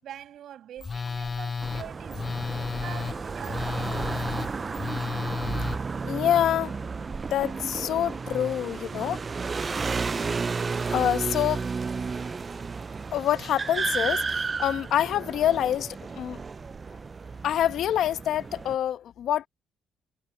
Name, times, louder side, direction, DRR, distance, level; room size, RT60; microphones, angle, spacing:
voice 1, 0.0-4.7, right 11 dB, 60° right, 6.8 m, -45 dB
Telephone, 0.8-5.8, left 5 dB, 25° left, 0.9 m, -32 dB
sound 1, 1.6-18.7, right 4 dB, 25° right, 0.4 m, -32 dB
voice 2, 6.0-6.7 7.3-9.2 10.9-11.6 13.1-16.4 17.4-19.5, left 11 dB, 65° left, 1.0 m, -26 dB
cardioid pair, 115°, 0 cm